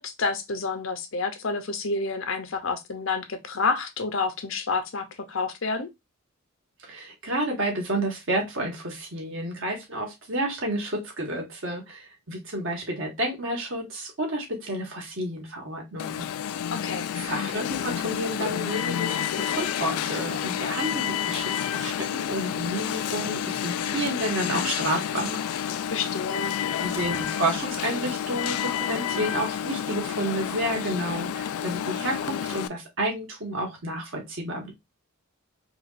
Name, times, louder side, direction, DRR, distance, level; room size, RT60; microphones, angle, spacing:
voice 1, 0.0-5.9 16.7-17.1 25.9-26.6, left 4 dB, 60° left, 0.7 m, -29 dB
voice 2, 6.8-16.3 17.1-25.4 26.8-34.7, right 1 dB, 60° right, 1.6 m, -30 dB
Alarm, 16.0-32.7, left 9 dB, 80° left, 0.3 m, -30 dB
4.9 x 2.4 x 2.5 m
head